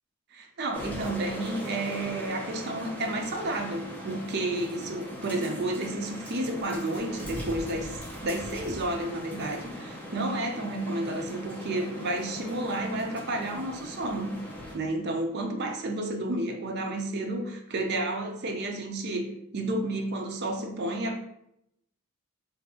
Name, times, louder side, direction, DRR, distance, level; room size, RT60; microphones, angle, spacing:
voice 1, 0.3-14.4 14.7-19.3 19.5-21.2, right 1 dB, 50° right, 4 dB, 0.4 m, -31 dB
sound 1, 0.7-14.7, equal, 5° left, 0.7 m, -40 dB
2.6 x 2.4 x 3.5 m, 0.78 s
head